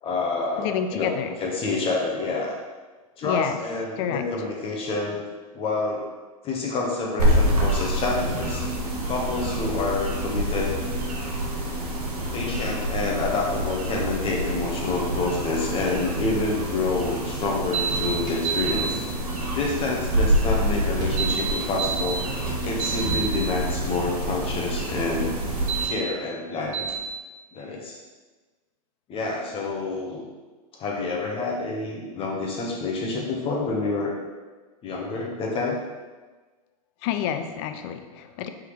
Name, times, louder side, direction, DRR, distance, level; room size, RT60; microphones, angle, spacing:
voice 1, 0.0-1.1 1.4-2.6 3.2-5.2 5.5-6.1 6.4-8.7 9.1-10.8 12.3-19.0 19.5-22.2 22.6-25.4 25.8-26.9 27.5-28.0 29.1-30.3 30.8-34.1 34.8-35.8, left 3 dB, 30° left, -1 dB, 0.8 m, -28 dB
voice 2, 0.6-1.3 3.2-3.6 4.0-4.2 37.0-38.5, left 8 dB, 45° left, 8 dB, 0.4 m, -28 dB
sound 1, 7.2-25.8, right 1 dB, 90° right, 1.0 m, -27 dB
sound 2, 17.7-17.9 18.3-18.7 21.0-22.0 22.5-23.2 25.5-25.9 26.7-26.9, right 7 dB, 45° right, 1.3 m, -28 dB
4.5 x 3.5 x 3.1 m, 1.3 s
hypercardioid pair, 115°, 20 cm